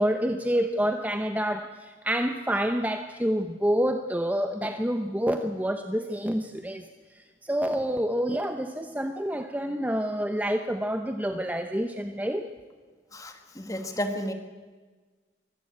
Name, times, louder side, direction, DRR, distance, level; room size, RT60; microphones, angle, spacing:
voice 1, 0.0-6.8 7.4-12.5, equal, 10° right, 6 dB, 0.8 m, -28 dB
voice 2, 13.1-14.3, equal, 20° left, 6 dB, 1.6 m, -32 dB
23.5 x 14.0 x 8.7 m, 1.4 s
head